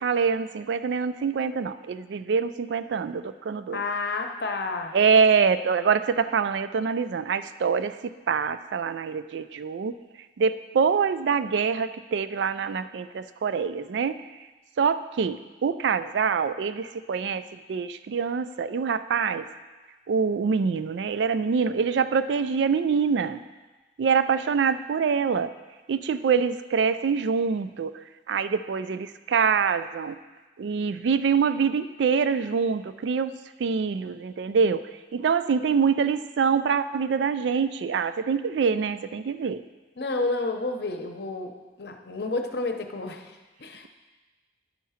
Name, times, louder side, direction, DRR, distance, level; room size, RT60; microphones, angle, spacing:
voice 1, 0.0-3.8 4.9-10.0 10.4-14.2 14.8-19.5 20.1-23.4 24.0-25.5 25.9-28.0 28.3-30.2 30.6-39.6, right 6 dB, 80° right, 13 dB, 0.4 m, -25 dB
voice 2, 3.7-5.0 40.0-43.9, left 3 dB, 60° left, 5 dB, 0.8 m, -30 dB
10.5 x 4.7 x 5.6 m, 1.2 s
head